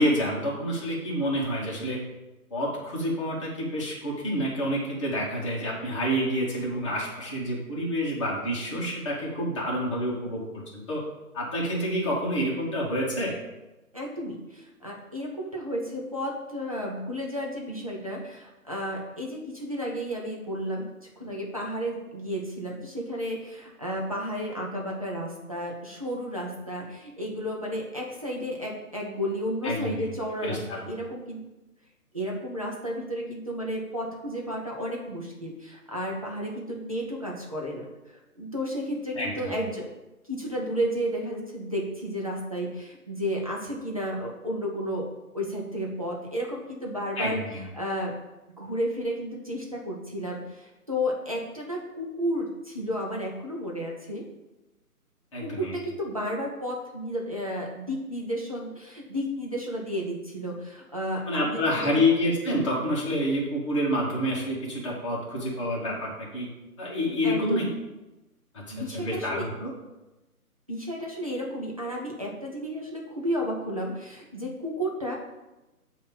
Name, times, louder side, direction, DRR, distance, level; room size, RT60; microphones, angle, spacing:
voice 1, 0.0-2.0 2.5-11.0 11.3-13.4 29.6-30.0 30.4-30.9 39.1-39.5 47.2-47.6 55.3-55.8 61.3-66.5 66.8-67.6 68.5-69.7, equal, 20° left, -5 dB, 1.1 m, -28 dB
voice 2, 13.9-31.4 32.1-39.9 40.2-45.1 45.3-47.4 47.7-48.2 48.6-54.2 55.4-62.0 67.2-67.7 68.7-69.5 70.7-75.2, equal, 25° right, -3 dB, 0.5 m, -32 dB
7.5 x 2.8 x 5.2 m, 1.0 s
figure-of-eight pair, 160°, 45 cm